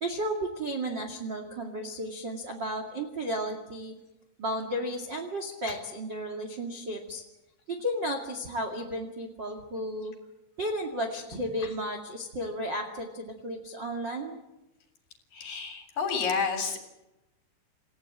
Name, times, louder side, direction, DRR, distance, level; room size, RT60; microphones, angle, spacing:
voice 1, 0.0-3.9 4.4-7.2 7.7-10.1 10.6-14.4, equal, 35° right, 4 dB, 1.8 m, -33 dB
voice 2, 15.3-16.9, left 5 dB, 50° left, 6 dB, 4.7 m, -30 dB
28.5 x 17.0 x 8.8 m, 0.97 s
omnidirectional pair, 5.5 m